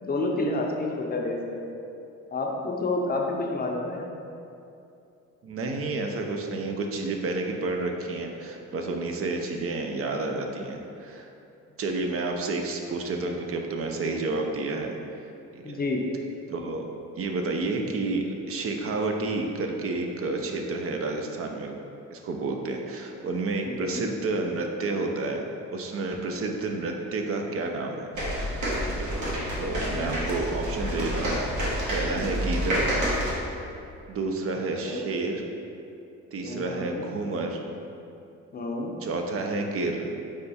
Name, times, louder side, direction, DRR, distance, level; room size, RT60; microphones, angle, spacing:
voice 1, 0.0-1.6 2.3-4.0 15.6-16.0 23.6-24.1 29.9-30.4 32.1-32.4 34.8-35.0 36.4-37.1 38.5-38.9, left 2 dB, 30° left, 0 dB, 0.5 m, -30 dB
voice 2, 5.4-11.3 11.8-15.0 15.5-15.8 16.5-16.8 17.2-21.8 22.1-25.4 25.7-28.1 28.5-28.6 28.8-29.1 29.6-31.5 31.9-32.9 34.1-35.4 36.3-37.6 39.0-40.1, right 3 dB, 50° right, 3 dB, 0.5 m, -30 dB
sound 1, 28.1-33.3, equal, 70° right, 1.2 m, -28 dB
4.8 x 2.3 x 4.1 m, 2.6 s
cardioid pair, 90°, 30 cm